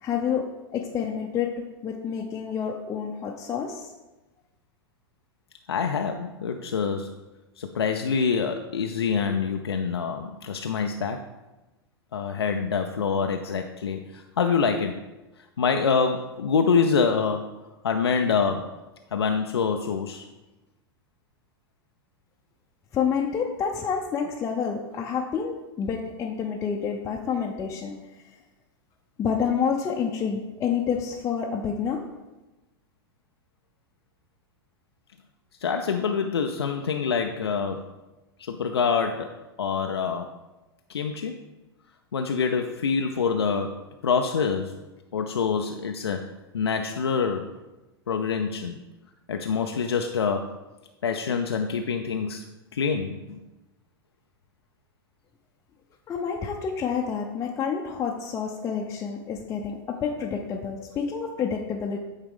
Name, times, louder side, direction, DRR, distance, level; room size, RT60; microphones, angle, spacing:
voice 1, 0.0-1.5 1.8-3.9 22.9-28.3 29.2-32.0 56.1-62.0, left 7 dB, 25° left, -1 dB, 0.6 m, -28 dB
voice 2, 5.7-7.1 7.6-11.2 12.1-15.0 15.6-17.5 17.8-18.7 19.1-20.3 35.6-37.9 38.4-40.3 40.9-41.4 42.1-44.8 45.1-47.5 48.1-48.8 49.3-50.6 51.0-52.4 52.7-53.4, left 5 dB, 90° left, 5 dB, 0.4 m, -26 dB
8.7 x 3.7 x 3.6 m, 1.1 s
hypercardioid pair, 100°, 13 cm